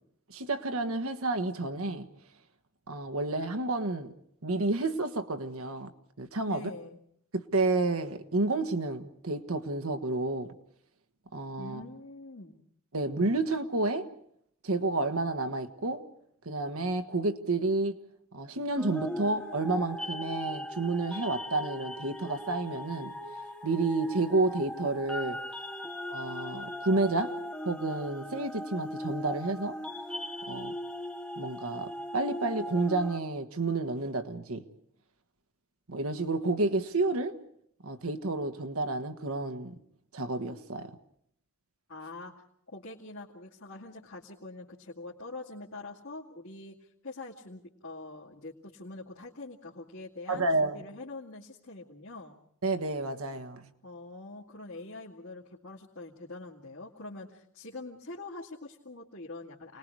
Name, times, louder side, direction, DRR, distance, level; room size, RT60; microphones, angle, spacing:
voice 1, 0.3-2.1 2.9-4.1 4.4-5.9 6.2-6.7 7.3-10.5 11.3-11.8 12.9-14.1 14.6-16.0 16.4-18.0 18.3-23.1 23.6-25.4 26.1-27.3 27.6-29.8 30.5-30.7 31.4-34.6 35.9-37.3 37.8-39.8 40.1-40.9 50.3-50.8 52.6-53.7, right 2 dB, 75° right, 7 dB, 1.4 m, -30 dB
voice 2, 6.5-7.0 11.6-12.6 41.9-42.3 42.7-52.3 53.8-59.8, left 2 dB, 70° left, -6 dB, 2.3 m, -44 dB
sound 1, 18.8-33.2, left 1 dB, 5° left, 0.9 m, -39 dB
29.5 x 20.5 x 4.8 m, 0.69 s
head